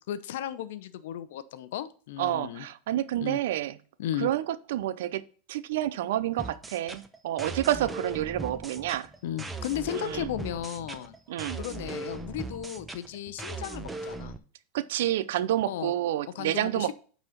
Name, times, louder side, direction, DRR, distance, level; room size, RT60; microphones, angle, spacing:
voice 1, 0.0-2.7 3.2-3.4 4.0-4.3 9.2-11.2 11.6-14.3 15.7-15.9 16.3-16.9, left 11 dB, 75° left, 14 dB, 0.7 m, -35 dB
voice 2, 2.2-3.8 4.2-5.2 5.5-9.1 9.9-10.3 11.3-11.6 14.7-16.9, right 13 dB, 75° right, 15 dB, 0.6 m, -29 dB
sound 1, 6.4-14.4, right 3 dB, 10° right, 0.8 m, -39 dB
8.9 x 4.1 x 5.7 m, 0.41 s
hypercardioid pair, 105°, 0 cm